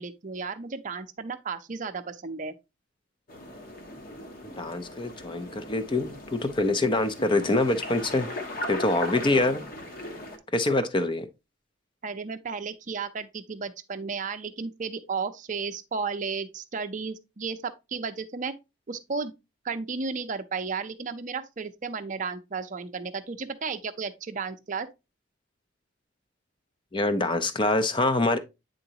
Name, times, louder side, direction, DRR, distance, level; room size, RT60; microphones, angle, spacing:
voice 1, 0.0-2.5 12.0-18.5 18.9-19.3 19.6-24.9, right 5 dB, 40° right, 0.6 m, -33 dB
sound 1, 3.3-10.4, left 1 dB, 45° left, 1.1 m, -38 dB
voice 2, 4.4-8.3 8.7-9.6 10.5-11.3 26.9-28.4, left 2 dB, 25° left, 0.5 m, -25 dB
8.9 x 3.8 x 2.8 m
head